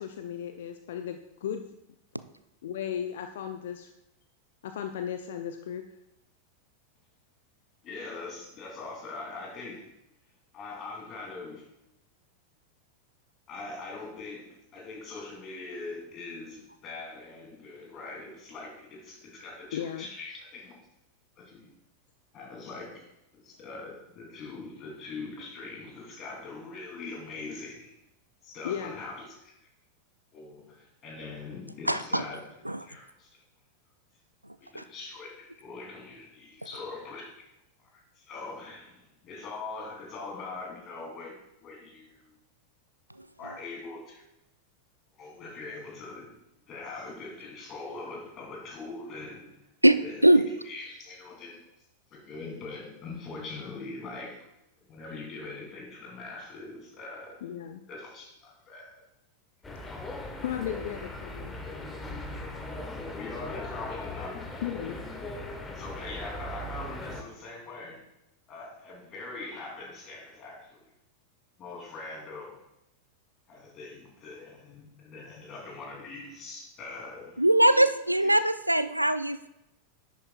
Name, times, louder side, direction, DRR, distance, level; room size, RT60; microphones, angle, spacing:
voice 1, 0.0-1.6 2.6-3.9 4.6-5.8 19.7-20.1 28.6-29.0 57.4-57.8 60.4-61.6 64.6-65.0, left 9 dB, 60° left, 7 dB, 0.5 m, -35 dB
voice 2, 7.8-9.9 10.5-11.7 13.5-20.7 21.4-21.7 22.3-27.9 28.4-29.4 30.3-32.4 32.8-33.3 34.6-37.5 37.8-42.3 43.4-44.2 45.2-46.3 46.7-49.6 50.0-51.6 52.1-54.4 54.9-57.4 57.9-59.0 63.1-64.6 65.7-68.0 68.5-70.9 71.6-72.5 73.5-77.4 78.2-78.4, left 3 dB, 30° left, -1 dB, 2.9 m, -42 dB
voice 3, 31.9-32.2 32.7-32.8 34.7-34.8 49.8-50.0 50.2-50.4 77.4-79.5, right 1 dB, 85° right, 13 dB, 0.4 m, -21 dB
sound 1, 59.6-67.2, left 2 dB, 15° left, 1.1 m, -39 dB
10.5 x 8.2 x 2.3 m, 0.84 s
figure-of-eight pair, 90°, 0 cm